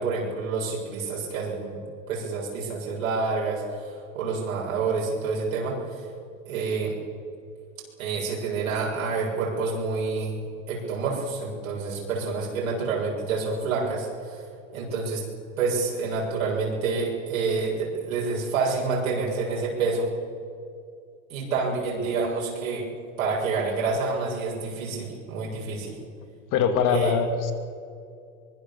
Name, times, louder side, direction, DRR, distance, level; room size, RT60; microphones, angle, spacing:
voice 1, 0.0-3.9 4.1-6.0 6.5-7.0 8.0-10.4 10.7-14.4 14.7-15.2 15.6-20.1 21.3-22.9 23.2-25.9 26.9-27.1, right 4 dB, 90° right, -3 dB, 6.9 m, -28 dB
voice 2, 26.5-27.5, left 7 dB, 50° left, 7 dB, 3.0 m, -22 dB
23.5 x 22.5 x 7.2 m, 2.4 s
supercardioid pair, 115°, 40 cm